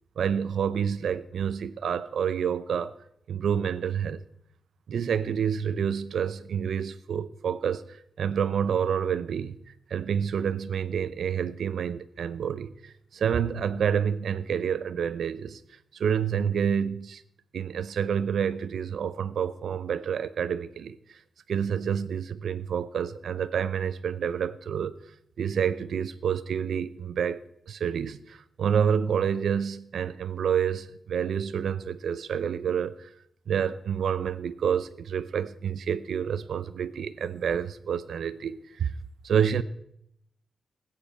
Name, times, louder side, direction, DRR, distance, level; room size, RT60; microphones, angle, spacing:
voice 1, 0.2-3.0 3.3-4.2 4.9-9.6 9.9-15.6 15.9-17.2 17.5-21.2 21.5-25.0 25.4-27.4 27.7-33.1 33.5-38.9 39.2-39.6, right 7 dB, 80° right, 0.6 m, -28 dB
19.5 x 9.1 x 4.3 m
wide cardioid pair, 120°, 0 cm